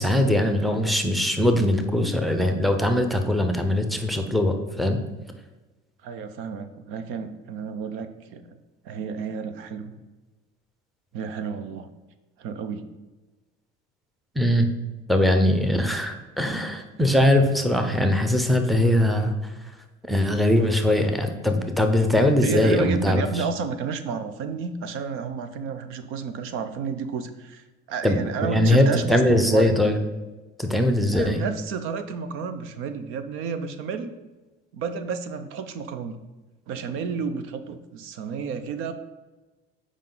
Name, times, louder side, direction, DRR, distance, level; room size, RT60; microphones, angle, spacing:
voice 1, 0.0-5.0 14.4-14.7 15.1-19.3 20.1-23.4 28.0-30.0 30.6-31.4, left 1 dB, ahead, 5 dB, 0.7 m, -21 dB
voice 2, 6.0-8.6 8.8-10.0 11.1-11.9 12.4-12.9 22.4-29.8 31.1-34.1 34.7-36.2 36.7-38.9, right 5 dB, 75° right, 10 dB, 0.7 m, -31 dB
7.5 x 4.9 x 3.9 m, 1.2 s
cardioid pair, 125°, 21 cm